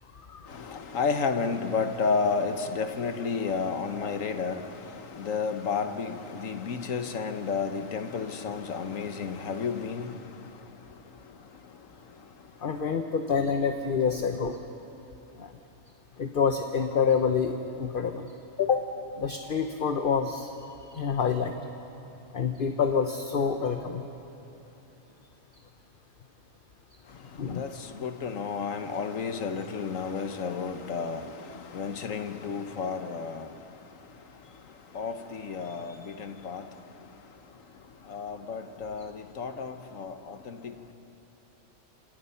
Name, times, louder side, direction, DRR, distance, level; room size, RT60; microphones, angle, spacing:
voice 1, 0.5-10.4 27.4-33.5 34.9-36.7 38.1-40.9, left 5 dB, 80° left, 1.5 m, -32 dB
voice 2, 12.6-14.6 16.2-18.3 18.6-18.9 19.2-20.5 20.9-21.5 22.3-24.0 27.4-27.7, left 6 dB, 45° left, 1.0 m, -27 dB
27.0 x 26.5 x 5.7 m
omnidirectional pair, 1.4 m